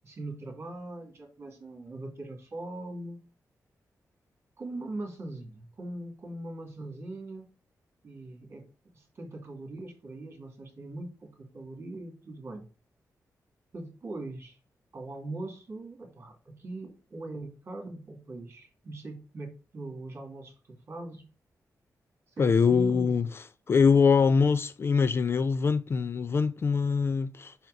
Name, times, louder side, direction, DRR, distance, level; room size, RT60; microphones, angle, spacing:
voice 1, 0.0-3.2 4.6-7.4 8.0-8.7 8.9-12.7 13.7-14.6 14.9-21.2 22.3-23.1, right 2 dB, 40° right, 2.3 m, -41 dB
voice 2, 22.4-27.6, left 5 dB, 40° left, 0.4 m, -24 dB
5.7 x 4.5 x 3.8 m
wide cardioid pair, 165°, 6 cm